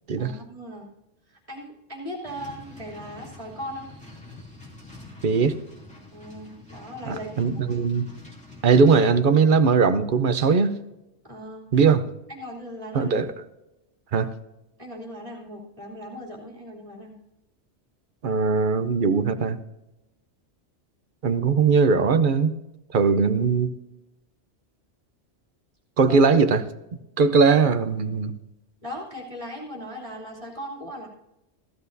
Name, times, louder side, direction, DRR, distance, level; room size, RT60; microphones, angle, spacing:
voice 1, 0.2-0.9 1.3-3.9 6.1-7.8 11.2-11.7 12.3-13.1 14.8-17.2 26.1-26.2 28.8-31.1, equal, 30° right, -3 dB, 2.9 m, -38 dB
sound 1, 2.2-9.1, left 2 dB, 5° left, 2.7 m, -45 dB
voice 2, 5.2-5.6 7.1-8.1 8.6-10.7 11.7-12.1 12.9-13.3 14.1-14.3 18.2-19.6 21.2-22.5 22.9-23.7 26.0-26.6 27.2-28.4, right 5 dB, 55° right, 10 dB, 0.8 m, -20 dB
15.5 x 13.5 x 2.7 m, 0.93 s
omnidirectional pair, 1.1 m